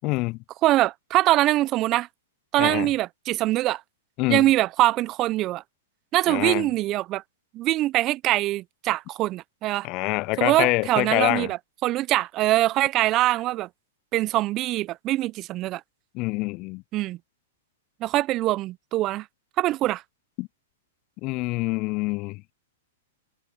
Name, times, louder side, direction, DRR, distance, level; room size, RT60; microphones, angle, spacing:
voice 1, 0.0-0.4 2.6-2.9 4.2-4.5 6.3-6.7 9.8-11.5 16.1-16.8 20.4-20.5 21.2-22.4, left 23 dB, 40° left, 0.5 m, -26 dB
voice 2, 0.6-2.1 2.5-3.8 4.3-5.6 6.1-7.2 7.5-9.9 10.4-13.7 14.1-15.8 16.9-17.2 18.0-19.3 19.6-20.0, right 16 dB, 35° right, 1.0 m, -23 dB
hypercardioid pair, 110°, 0 cm